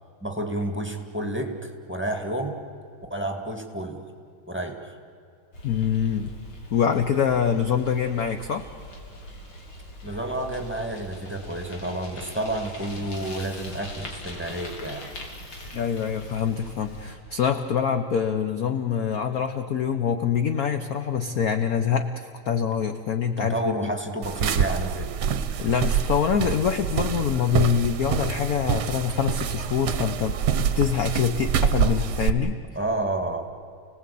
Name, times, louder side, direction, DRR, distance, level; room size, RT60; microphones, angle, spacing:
voice 1, 0.2-2.6 3.1-4.0 4.5-5.0 10.0-15.1 23.4-25.1 32.8-33.5, right 1 dB, 5° right, 3 dB, 1.8 m, -30 dB
Bicycle, 5.5-17.1, equal, 75° left, 3.8 m, -41 dB
voice 2, 5.6-6.3 6.7-8.7 15.7-23.9 25.6-32.6, left 7 dB, 55° left, 8 dB, 1.1 m, -25 dB
sound 1, 24.2-32.3, right 8 dB, 60° right, 1.3 m, -26 dB
30.0 x 18.5 x 8.5 m, 2.4 s
omnidirectional pair, 2.4 m